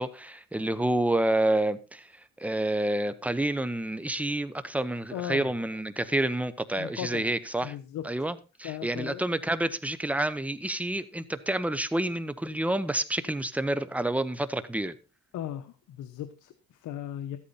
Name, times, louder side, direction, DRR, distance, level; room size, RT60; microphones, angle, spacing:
voice 1, 0.0-2.1 2.4-7.7 8.0-14.9, right 1 dB, 5° right, 0.9 m, -29 dB
voice 2, 5.1-5.5 6.8-7.3 7.6-8.0 8.6-9.2 15.3-17.4, left 11 dB, 80° left, 1.0 m, -37 dB
13.0 x 8.6 x 4.1 m
cardioid pair, 90°, 30 cm